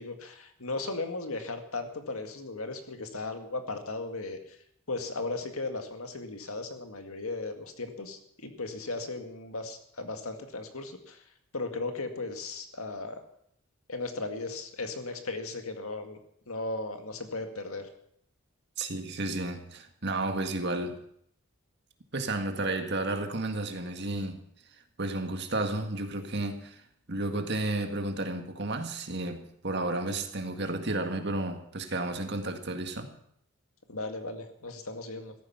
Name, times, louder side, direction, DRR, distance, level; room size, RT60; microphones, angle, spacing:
voice 1, 0.0-4.6 4.9-11.2 11.5-13.2 13.9-16.2 16.5-17.9 33.9-35.3, left 3 dB, 75° left, 2.0 m, -36 dB
voice 2, 18.8-21.0 22.1-24.4 25.0-26.8 27.1-33.2, right 2 dB, 50° right, 1.9 m, -32 dB
16.0 x 13.5 x 5.8 m
head